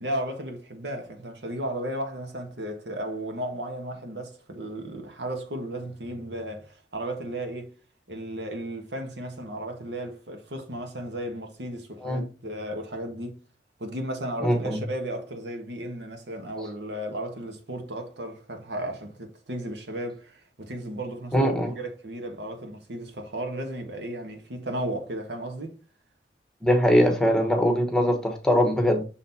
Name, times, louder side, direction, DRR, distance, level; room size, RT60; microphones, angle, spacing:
voice 1, 0.0-7.7 8.1-13.4 13.8-21.5 21.7-25.7, right 1 dB, 80° right, 1.4 m, -34 dB
voice 2, 14.4-14.8 21.3-21.7 26.6-29.0, equal, 5° left, 1.1 m, -22 dB
6.3 x 4.0 x 4.1 m
head